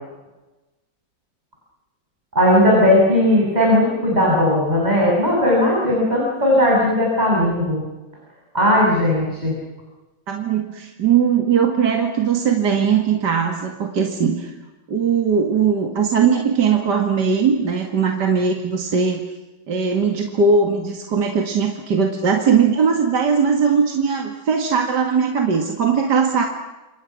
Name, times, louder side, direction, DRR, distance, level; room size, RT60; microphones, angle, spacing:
voice 1, 2.3-7.8 8.5-9.5, left 1 dB, 20° right, -3 dB, 7.8 m, -17 dB
voice 2, 10.3-14.5 14.9-19.3 19.7-26.5, right 6 dB, 70° right, 2 dB, 2.7 m, -19 dB
29.5 x 28.0 x 6.2 m, 1.1 s
omnidirectional pair, 1.9 m